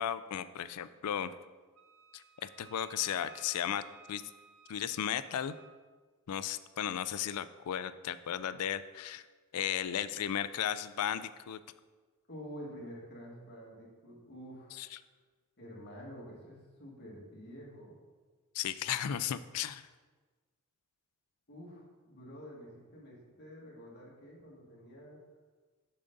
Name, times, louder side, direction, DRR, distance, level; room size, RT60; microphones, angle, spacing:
voice 1, 0.0-1.3 2.1-3.8 4.1-4.2 4.7-5.5 6.3-9.2 9.5-11.6 14.8-14.9 18.5-19.8, left 9 dB, 90° left, 14 dB, 0.4 m, -35 dB
Wind instrument woodwind instrument, 1.8-5.8, right 7 dB, 70° right, 0.8 m, -57 dB
voice 2, 12.3-14.8 15.6-18.0 21.5-25.2, equal, 50° left, -4 dB, 2.0 m, -48 dB
7.0 x 6.6 x 3.9 m, 1.4 s
head